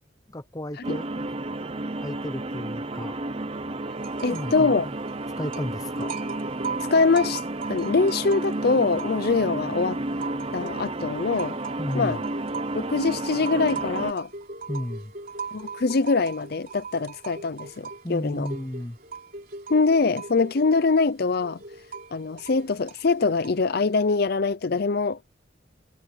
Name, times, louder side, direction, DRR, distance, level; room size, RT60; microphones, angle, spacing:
voice 1, 0.3-1.3 2.0-3.2 4.3-4.9 5.4-6.1 11.8-12.2 14.7-15.1 18.0-19.0, left 1 dB, 20° left, 1.0 m, -33 dB
sound 1, 0.8-14.1, right 2 dB, 30° right, 0.8 m, -32 dB
sound 2, 4.0-4.6 4.9-9.5 9.9-23.8, right 5 dB, 50° right, 3.5 m, -39 dB
voice 2, 4.2-4.9 6.9-7.4 7.7-10.0 10.5-11.6 11.9-12.2 12.7-14.3 15.5-18.5 19.7-21.6 22.1-25.2, left 4 dB, 55° left, 0.5 m, -23 dB
head